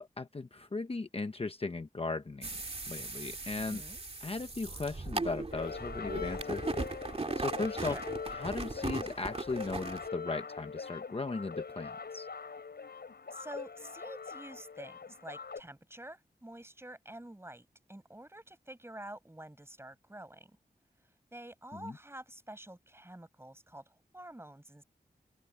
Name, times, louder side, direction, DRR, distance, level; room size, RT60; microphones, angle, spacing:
voice 1, 0.0-2.5 2.9-3.8 4.2-6.6 7.3-8.0 8.3-12.3 21.7-22.0, left 3 dB, 35° left, 0.9 m, -37 dB
sound 1, 2.4-10.1, right 3 dB, 35° right, 2.3 m, -38 dB
voice 2, 3.6-4.0 7.7-8.0 13.3-20.6 21.3-24.8, right 1 dB, 15° right, 7.8 m, -48 dB
sound 2, 5.5-15.6, left 5 dB, 75° left, 5.3 m, -42 dB
open air
wide cardioid pair, 100°, 17 cm